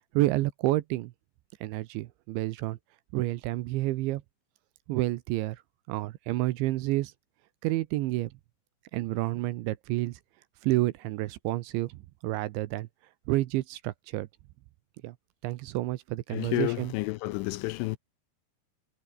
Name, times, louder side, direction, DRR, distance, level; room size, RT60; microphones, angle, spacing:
voice 1, 0.1-1.1 1.6-2.8 3.1-4.2 4.9-5.6 5.9-7.1 7.6-8.3 8.9-10.2 10.6-12.9 13.3-14.3 15.0-15.2 15.4-16.9, right 18 dB, 75° right, 2.9 m, -29 dB
voice 2, 16.3-18.0, left 20 dB, 80° left, 2.9 m, -30 dB
omnidirectional pair, 5.8 m